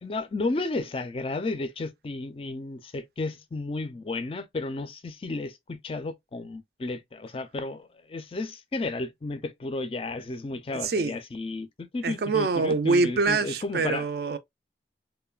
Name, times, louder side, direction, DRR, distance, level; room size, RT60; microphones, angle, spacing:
voice 1, 0.0-14.1, left 2 dB, 30° left, 0.4 m, -33 dB
voice 2, 10.8-11.1 12.0-14.4, right 3 dB, 55° right, 0.4 m, -25 dB
3.1 x 2.1 x 2.2 m
head